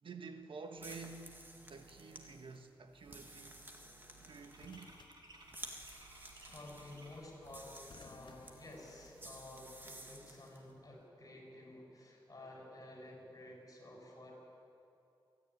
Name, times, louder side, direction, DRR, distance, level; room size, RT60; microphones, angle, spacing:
voice 1, 0.0-1.4 1.7-5.0, right 4 dB, 80° right, 1.5 m, -50 dB
sound 1, 0.7-10.6, right 1 dB, 25° right, 1.9 m, -54 dB
sound 2, 2.6-2.7 2.9-7.5, right 1 dB, 55° right, 3.3 m, -60 dB
sound 3, 4.6-6.1 7.9-9.6 10.8-11.1, left 5 dB, 65° left, 0.9 m, -63 dB
voice 2, 6.4-14.3, left 1 dB, 40° left, 6.1 m, -52 dB
28.0 x 10.5 x 9.7 m
wide cardioid pair, 130°, 9 cm